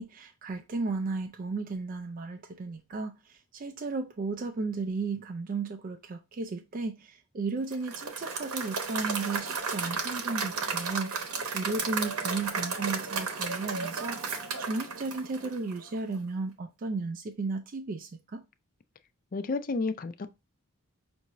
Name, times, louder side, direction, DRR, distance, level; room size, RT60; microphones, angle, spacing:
voice 1, 0.0-18.4, right 3 dB, 40° right, 0.4 m, -34 dB
Applause / Crowd, 7.7-15.9, right 5 dB, 70° right, 0.8 m, -33 dB
voice 2, 19.3-20.3, left 3 dB, 40° left, 0.4 m, -31 dB
5.5 x 2.6 x 3.0 m
head